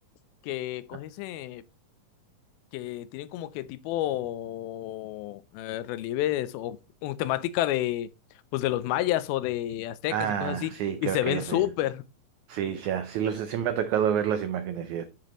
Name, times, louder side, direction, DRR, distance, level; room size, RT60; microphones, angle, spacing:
voice 1, 0.4-1.6 2.7-8.1 8.5-10.7 11.0-12.0, left 14 dB, 85° left, 2.5 m, -30 dB
voice 2, 10.1-11.6 12.5-15.1, right 9 dB, 85° right, 1.6 m, -28 dB
8.9 x 7.5 x 3.0 m
omnidirectional pair, 4.3 m